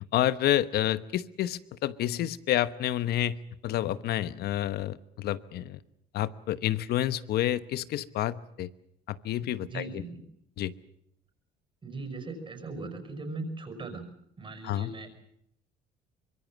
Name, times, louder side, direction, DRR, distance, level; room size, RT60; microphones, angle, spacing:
voice 1, 0.1-3.4 3.6-5.8 6.1-8.7 9.1-9.8 10.6-10.7 14.6-14.9, left 12 dB, 70° left, 15 dB, 1.1 m, -29 dB
voice 2, 9.6-10.2 11.8-14.0 14.4-15.1, right 3 dB, 30° right, 7 dB, 5.6 m, -39 dB
25.0 x 22.5 x 7.4 m, 0.74 s
cardioid pair, 110°, 17 cm